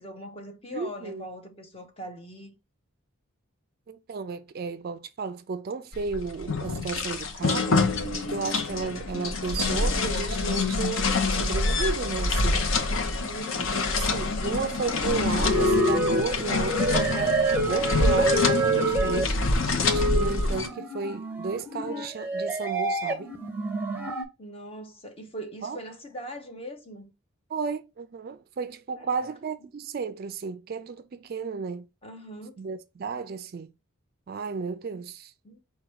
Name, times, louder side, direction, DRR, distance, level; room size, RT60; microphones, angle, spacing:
voice 1, 0.0-2.5 13.2-14.2 24.4-27.1 29.0-29.3 32.0-32.6 35.4-35.6, equal, 25° left, 0.8 m, -41 dB
voice 2, 0.7-1.2 3.9-7.8 8.3-12.6 14.0-17.4 17.7-19.4 19.9-23.3 25.6-25.8 27.5-31.9 32.6-33.7 34.3-35.3, right 4 dB, 45° right, 0.3 m, -33 dB
sound 1, 5.9-20.7, left 3 dB, 65° left, 0.7 m, -26 dB
sound 2, 14.9-24.3, right 1 dB, 10° right, 0.7 m, -27 dB
4.7 x 2.3 x 4.4 m
head